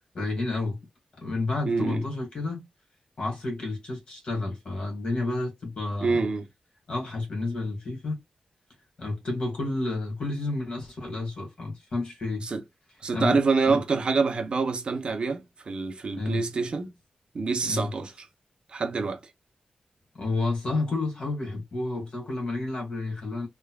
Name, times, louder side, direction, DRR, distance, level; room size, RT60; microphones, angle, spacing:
voice 1, 0.1-0.8 1.2-2.7 3.2-6.2 6.9-8.2 9.0-12.5 13.1-13.4 13.7-13.8 16.2-16.4 17.7-17.9 20.2-23.5, left 2 dB, 50° left, 1.8 m, -30 dB
voice 2, 1.7-2.0 6.0-6.5 12.4-12.6 13.0-16.9 17.3-18.1 18.7-19.2, right 4 dB, 45° right, 0.8 m, -26 dB
3.4 x 3.1 x 2.3 m
wide cardioid pair, 175°, 2 cm